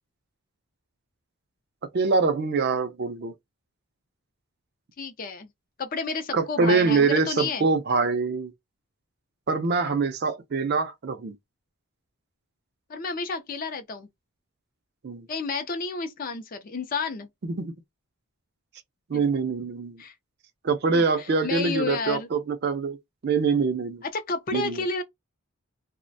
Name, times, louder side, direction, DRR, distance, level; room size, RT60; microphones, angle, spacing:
voice 1, 1.9-3.3 6.3-8.5 9.5-11.4 15.0-15.3 17.4-17.7 19.1-20.0 20.6-23.0 23.2-24.0 24.5-24.8, right 4 dB, 45° right, 0.4 m, -24 dB
voice 2, 5.0-5.5 5.8-7.7 12.9-14.1 15.3-17.3 19.1-19.2 20.0-20.1 20.9-22.3 24.0-25.0, left 4 dB, 40° left, 0.4 m, -31 dB
2.4 x 2.1 x 2.5 m
head